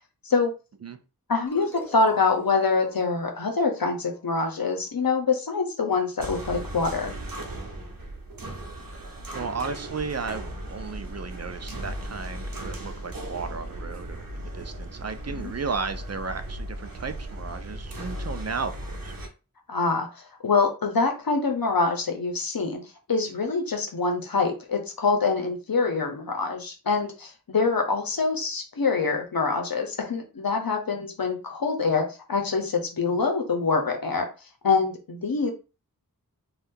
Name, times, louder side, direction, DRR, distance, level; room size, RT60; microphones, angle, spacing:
voice 1, 1.3-7.1 15.3-15.5 19.7-22.8 23.1-32.0 32.3-34.3 34.6-35.5, left 4 dB, 70° left, 4 dB, 0.8 m, -25 dB
sound 1, 1.5-4.7, left 2 dB, 5° left, 0.7 m, -44 dB
sound 2, 6.2-19.3, right 1 dB, 70° right, 0.8 m, -37 dB
voice 2, 9.3-19.2, right 4 dB, 45° right, 9 dB, 0.4 m, -34 dB
2.6 x 2.3 x 3.6 m, 0.32 s
wide cardioid pair, 45°, 36 cm